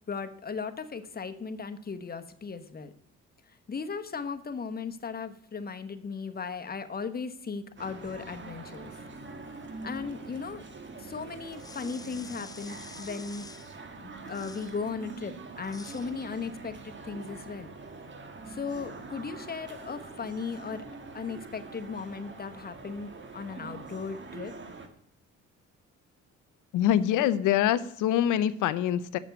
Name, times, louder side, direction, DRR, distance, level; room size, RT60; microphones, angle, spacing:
voice 1, 0.1-2.9 3.5-8.9 9.8-10.6 11.0-13.5 14.0-17.7 18.5-20.8 21.1-24.5, left 5 dB, 30° left, 9 dB, 1.0 m, -37 dB
sound 1, 7.8-24.9, right 3 dB, 40° right, 1.6 m, -44 dB
sound 2, 11.5-13.8 14.3-14.8 15.6-16.1, left 4 dB, 15° left, 0.3 m, -48 dB
voice 2, 26.7-29.2, left 11 dB, 90° left, 14 dB, 0.7 m, -25 dB
7.2 x 6.8 x 8.0 m, 0.72 s
cardioid pair, 90°, 30 cm